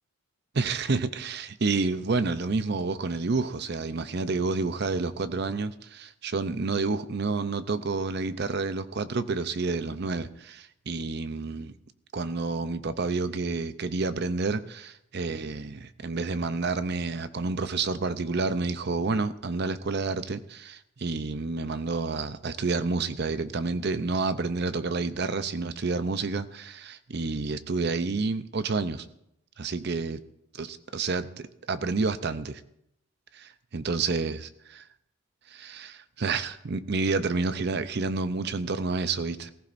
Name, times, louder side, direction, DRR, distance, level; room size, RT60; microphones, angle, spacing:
voice 1, 0.6-11.7 12.1-29.1 29.6-30.2 30.6-32.6 33.3-34.8 35.5-39.5, right 3 dB, 50° right, 0.6 m, -29 dB
20.0 x 14.5 x 2.6 m
head